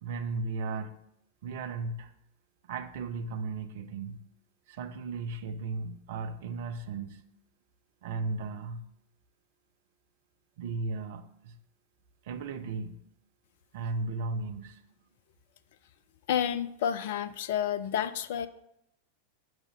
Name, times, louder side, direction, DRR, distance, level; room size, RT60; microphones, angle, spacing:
voice 1, 0.0-1.0 1.4-2.1 2.6-4.2 4.7-7.2 8.0-8.8 10.6-11.6 12.2-13.0 13.7-14.8, right 3 dB, 55° right, 0.6 m, -35 dB
voice 2, 16.3-18.5, left 9 dB, 55° left, 0.4 m, -30 dB
6.3 x 5.0 x 6.2 m
figure-of-eight pair, 90°, 0 cm